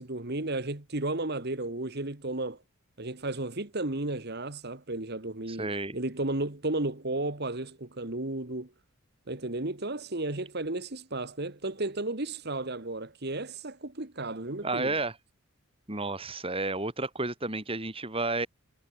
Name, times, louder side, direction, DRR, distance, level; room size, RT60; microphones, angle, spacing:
voice 1, 0.0-2.6 3.0-5.7 5.9-8.7 9.3-14.9, right 2 dB, 50° right, 1.9 m, -33 dB
voice 2, 5.5-6.0 14.6-15.1 15.9-18.5, right 2 dB, 25° right, 3.7 m, -31 dB
head